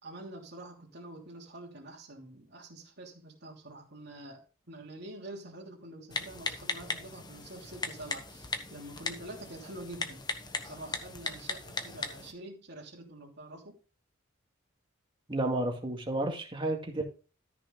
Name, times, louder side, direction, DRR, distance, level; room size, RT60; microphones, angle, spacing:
voice 1, 0.0-10.2 10.6-13.8, right 1 dB, 55° right, 0 dB, 3.0 m, -46 dB
Typing, 6.1-12.3, left 3 dB, 20° left, 1.1 m, -38 dB
voice 2, 15.3-17.0, right 2 dB, 25° right, 2 dB, 2.2 m, -31 dB
13.5 x 6.0 x 3.9 m, 0.35 s
head